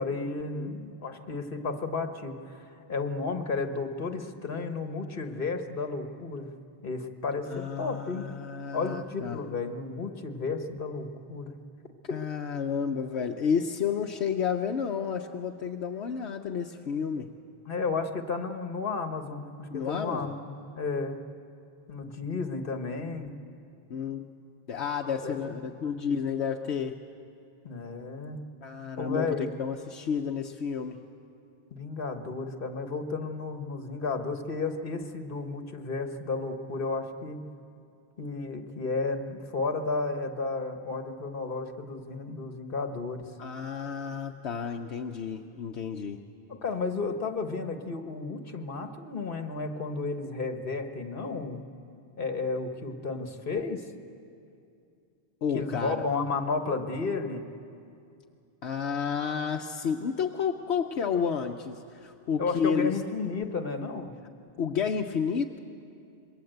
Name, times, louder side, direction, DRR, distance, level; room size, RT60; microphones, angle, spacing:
voice 1, 0.0-6.5 6.8-8.3 8.7-11.5 17.7-21.2 21.9-23.3 25.2-25.6 27.6-28.4 29.0-29.5 31.7-37.4 38.2-43.3 46.5-51.7 52.2-53.8 55.5-57.4 62.4-64.1, left 4 dB, 55° left, 6 dB, 1.7 m, -33 dB
voice 2, 7.4-9.4 12.1-17.3 19.7-20.3 23.9-24.2 24.7-26.9 28.6-31.0 43.4-46.2 55.4-56.0 58.6-62.9 64.6-65.6, left 6 dB, 75° left, 4 dB, 1.1 m, -31 dB
27.0 x 22.0 x 8.0 m, 2.5 s
omnidirectional pair, 1.1 m